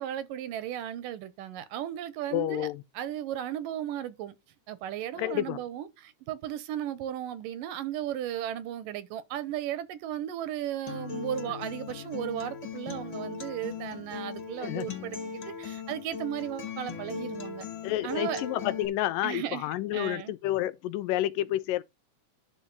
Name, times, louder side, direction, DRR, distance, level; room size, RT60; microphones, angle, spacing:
voice 1, 0.0-2.7 2.9-4.3 4.7-17.7 18.0-18.4 19.2-19.7 19.9-20.3, right 11 dB, 90° right, 2.7 m, -35 dB
voice 2, 2.3-2.8 5.2-5.6 14.6-14.9 17.8-21.8, left 14 dB, 85° left, 2.4 m, -30 dB
Acoustic guitar, 10.9-18.9, left 5 dB, 45° left, 2.0 m, -38 dB
11.5 x 4.0 x 5.5 m
omnidirectional pair, 3.8 m